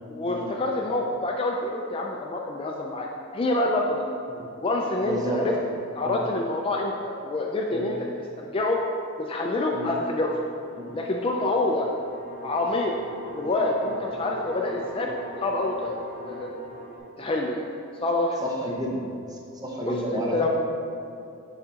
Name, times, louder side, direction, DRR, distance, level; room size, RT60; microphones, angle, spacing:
voice 1, 0.1-4.0 4.6-5.5 6.0-8.0 8.4-8.8 9.2-10.5 10.9-11.9 12.4-12.9 13.3-16.5 17.2-17.7 18.0-18.5 19.9-20.5, left 2 dB, 25° left, 0 dB, 0.3 m, -27 dB
voice 2, 5.0-5.6 6.0-6.3 7.7-7.9 9.7-9.9 10.8-10.9 18.4-20.5, right 1 dB, 20° right, -2 dB, 0.7 m, -31 dB
sound 1, 10.3-17.0, equal, 40° right, 1.2 m, -41 dB
6.8 x 5.0 x 2.8 m, 2.6 s
head